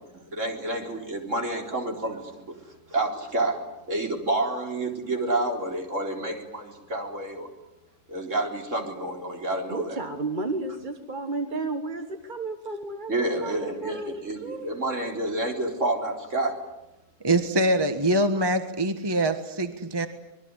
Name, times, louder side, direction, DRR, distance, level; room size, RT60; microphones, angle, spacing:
voice 1, 0.1-2.5 2.9-3.6 3.9-7.5 8.1-10.0 13.1-16.5, right 2 dB, 50° right, 2 dB, 4.6 m, -29 dB
voice 2, 9.7-14.8, right 3 dB, 30° right, 7 dB, 1.6 m, -33 dB
voice 3, 17.2-20.1, right 1 dB, 15° right, 8 dB, 1.4 m, -24 dB
26.0 x 21.5 x 9.8 m, 0.95 s
omnidirectional pair, 1.6 m